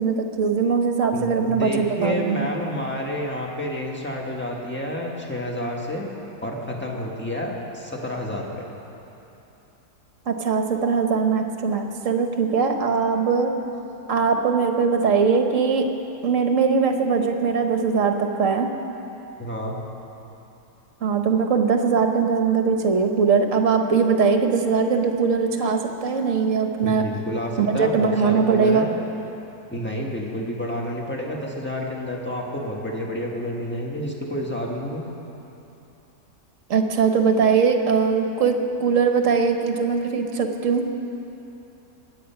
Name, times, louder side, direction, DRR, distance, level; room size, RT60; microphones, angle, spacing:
voice 1, 0.0-2.5 10.3-13.5 14.1-15.8 16.2-18.7 21.0-27.0 27.6-28.9 36.7-38.5 38.8-40.8, right 5 dB, 55° right, 5 dB, 1.3 m, -21 dB
voice 2, 1.1-6.1 6.4-8.7 19.4-19.8 26.8-28.9 29.7-35.0, equal, 5° left, -1 dB, 1.5 m, -29 dB
21.5 x 8.8 x 5.8 m, 2.9 s
omnidirectional pair, 1.8 m